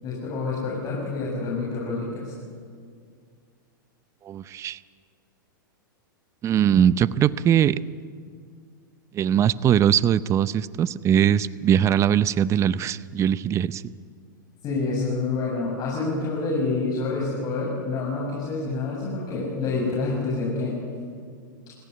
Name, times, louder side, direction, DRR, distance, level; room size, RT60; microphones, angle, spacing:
voice 1, 0.0-2.3 14.6-20.8, left 3 dB, 35° left, -4 dB, 7.3 m, -27 dB
voice 2, 4.2-4.8 6.4-7.8 9.1-13.8, right 9 dB, 25° right, 18 dB, 0.6 m, -21 dB
29.0 x 15.0 x 9.6 m, 2.1 s
hypercardioid pair, 115°, 11 cm